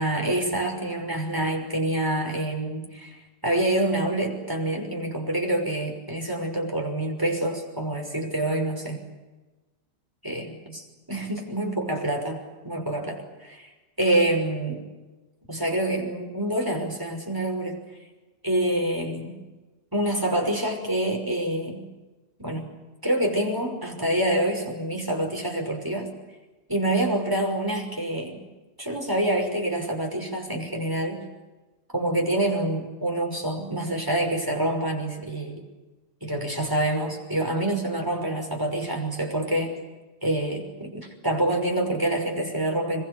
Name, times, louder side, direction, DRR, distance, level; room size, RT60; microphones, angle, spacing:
voice 1, 0.0-3.2 3.4-9.0 10.2-13.7 14.0-14.8 15.5-17.8 18.4-19.4 19.9-21.9 22.4-22.7 23.0-26.2 26.7-28.4 28.8-31.3 31.9-35.6 36.2-39.8 40.2-43.0, right 1 dB, 10° right, 1 dB, 6.0 m, -27 dB
25.5 x 23.5 x 8.6 m, 1.2 s
omnidirectional pair, 1.9 m